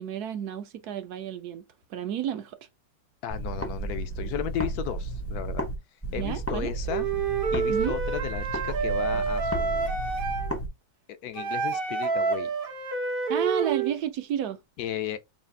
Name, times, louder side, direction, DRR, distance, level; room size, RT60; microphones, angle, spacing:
voice 1, 0.0-1.6 1.9-2.6 6.2-6.7 7.7-8.0 13.3-14.6, right 10 dB, 70° right, 1.0 m, -31 dB
voice 2, 3.2-5.7 6.1-7.1 7.5-9.9 11.1-12.5 14.8-15.2, left 10 dB, 70° left, 0.9 m, -35 dB
sound 1, 3.3-5.7 6.0-10.7, right 2 dB, 20° left, 0.4 m, -33 dB
Wind instrument woodwind instrument, 6.9-10.5 11.3-13.9, right 5 dB, 50° right, 0.6 m, -28 dB
4.9 x 2.4 x 3.4 m
omnidirectional pair, 2.0 m